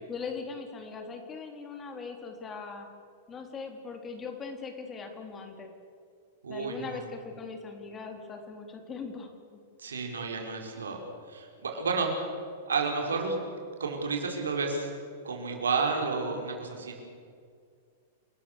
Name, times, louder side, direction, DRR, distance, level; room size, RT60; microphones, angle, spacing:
voice 1, 0.1-2.9 3.3-5.7 6.5-9.6, left 5 dB, 20° left, 4 dB, 3.6 m, -40 dB
voice 2, 6.4-7.1 9.8-12.3 12.7-13.4 13.8-14.9 15.2-17.0, right 4 dB, 70° right, 2 dB, 5.0 m, -31 dB
29.5 x 20.5 x 7.0 m, 2.2 s
figure-of-eight pair, 100°, 0 cm